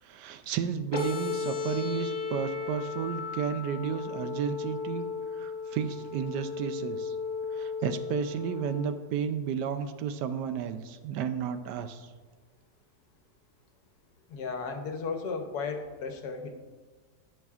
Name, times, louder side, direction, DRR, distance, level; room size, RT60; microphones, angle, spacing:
voice 1, 0.0-5.1 5.3-7.2 7.5-12.1, right 7 dB, 80° right, 10 dB, 1.2 m, -32 dB
sound 1, 0.9-8.9, left 5 dB, 20° left, 0.7 m, -35 dB
voice 2, 14.3-16.5, left 4 dB, 70° left, 6 dB, 1.3 m, -35 dB
15.5 x 6.1 x 2.4 m, 1.4 s
omnidirectional pair, 1.8 m